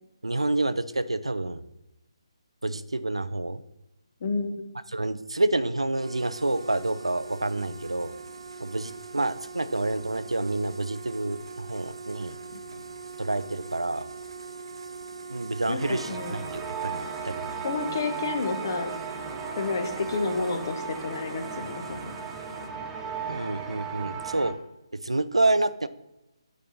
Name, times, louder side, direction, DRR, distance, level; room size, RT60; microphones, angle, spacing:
voice 1, 0.2-1.6 2.6-3.6 4.9-8.1 8.6-12.3 13.2-14.1 15.3-16.1 16.5-17.5 23.3-24.5 25.0-25.9, right 2 dB, 85° right, 14 dB, 0.4 m, -28 dB
voice 2, 4.2-4.6 12.5-12.6 15.7-16.3 17.6-18.9 19.6-22.1, left 4 dB, 40° left, 6 dB, 1.0 m, -30 dB
sound 1, 5.8-22.7, right 4 dB, 65° right, 0.8 m, -42 dB
sound 2, 15.8-24.5, right 6 dB, 10° right, 0.6 m, -36 dB
8.6 x 4.3 x 4.0 m, 0.95 s
figure-of-eight pair, 145°, 3 cm